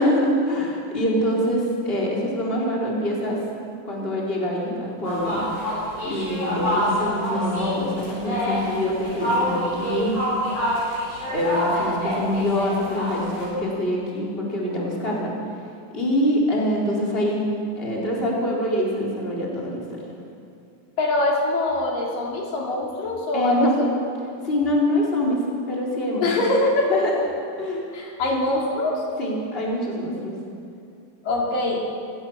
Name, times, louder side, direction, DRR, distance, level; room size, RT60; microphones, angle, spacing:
voice 1, 0.0-3.4 3.9-5.5 6.0-10.2 11.3-15.3 15.9-17.4 17.8-20.0 23.3-23.8 24.4-25.4 25.7-26.3 26.9-27.2 27.6-28.0 28.3-28.5 29.2-30.3, equal, 15° left, -3 dB, 4.1 m, -24 dB
sound 1, 5.0-13.4, equal, 45° left, 9.3 m, -27 dB
voice 2, 21.0-23.9 26.2-27.0 27.9-29.0 31.2-31.8, left 2 dB, 70° left, -1 dB, 4.4 m, -23 dB
27.0 x 16.0 x 7.3 m, 2.5 s
omnidirectional pair, 4.1 m